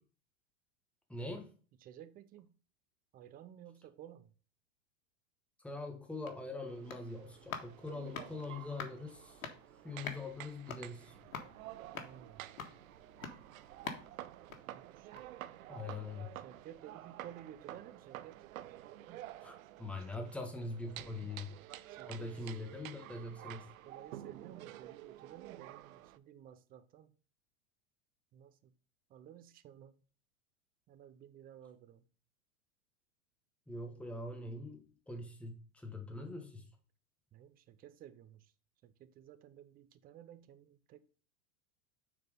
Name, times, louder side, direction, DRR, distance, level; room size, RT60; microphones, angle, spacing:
voice 1, 1.1-1.5 5.6-9.4 9.8-11.2 15.7-16.4 19.4-21.5 22.1-23.7 33.7-36.7, left 2 dB, 5° left, 1.4 m, -43 dB
voice 2, 1.8-2.5 3.1-4.3 12.0-12.5 14.7-15.2 16.4-18.4 18.8-19.2 20.4-20.5 21.0-21.3 21.9-22.6 23.8-27.1 28.3-28.7 29.1-30.0 30.9-32.0 37.3-38.5 38.8-41.0, right 10 dB, 20° right, 0.5 m, -54 dB
sound 1, 6.0-15.4 15.8-15.9, left 6 dB, 85° left, 1.6 m, -48 dB
sound 2, 6.7-26.2, right 14 dB, 80° right, 0.7 m, -51 dB
6.7 x 4.4 x 5.1 m
supercardioid pair, 130°, 41 cm